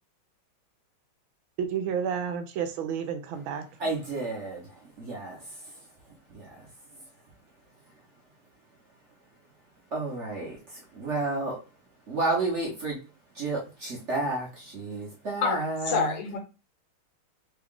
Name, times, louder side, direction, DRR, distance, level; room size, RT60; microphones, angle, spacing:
voice 1, 1.6-3.6, right 7 dB, 85° right, 8 dB, 1.4 m, -30 dB
voice 2, 3.8-5.7 6.1-6.7 6.9-7.0 9.9-11.6 12.1-13.0 13.3-16.2, right 2 dB, 50° right, -3 dB, 0.9 m, -32 dB
voice 3, 15.4-16.4, left 5 dB, 70° left, 4 dB, 1.3 m, -28 dB
3.5 x 2.3 x 3.7 m, 0.30 s
omnidirectional pair, 2.3 m